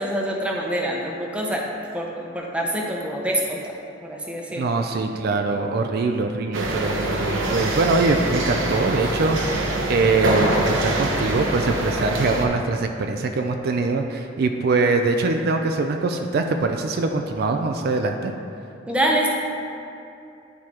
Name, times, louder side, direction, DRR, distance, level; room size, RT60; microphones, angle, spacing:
voice 1, 0.0-1.6 1.9-3.7 4.0-4.6 18.9-19.3, right 1 dB, 5° right, -1 dB, 0.7 m, -25 dB
voice 2, 4.6-9.6 9.9-18.3, right 3 dB, 55° right, 4 dB, 0.4 m, -23 dB
sound 1, 6.5-12.5, right 1 dB, 85° right, 0.9 m, -24 dB
10.5 x 4.7 x 2.9 m, 2.6 s
head